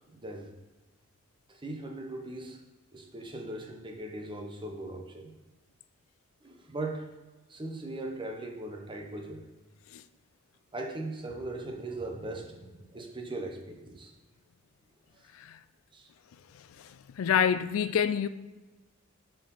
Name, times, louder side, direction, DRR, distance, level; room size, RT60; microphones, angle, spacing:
voice 1, 0.1-0.5 1.5-2.6 2.9-5.3 6.4-7.1 7.5-9.4 10.7-14.1 15.9-16.1, right 2 dB, 25° right, 0.8 m, -39 dB
voice 2, 17.2-18.3, left 8 dB, 70° left, 0.3 m, -25 dB
7.1 x 4.7 x 4.0 m
head